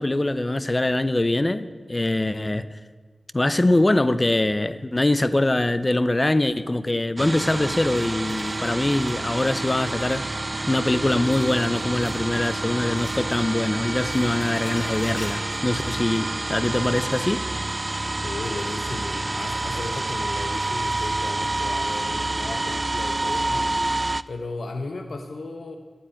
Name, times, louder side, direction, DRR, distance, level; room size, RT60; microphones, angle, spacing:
voice 1, 0.0-2.7 3.3-10.3 10.7-17.4, left 1 dB, 30° left, 0.6 m, -23 dB
sound 1, 7.2-24.2, right 2 dB, 35° right, 0.3 m, -28 dB
sound 2, 7.9-10.1 11.3-12.3 12.5-13.7 13.9-16.2, left 1 dB, 65° left, 3.2 m, -46 dB
voice 2, 18.2-23.7 24.3-25.8, left 3 dB, 80° left, 0.8 m, -35 dB
12.5 x 8.7 x 9.0 m
wide cardioid pair, 70°, 0 cm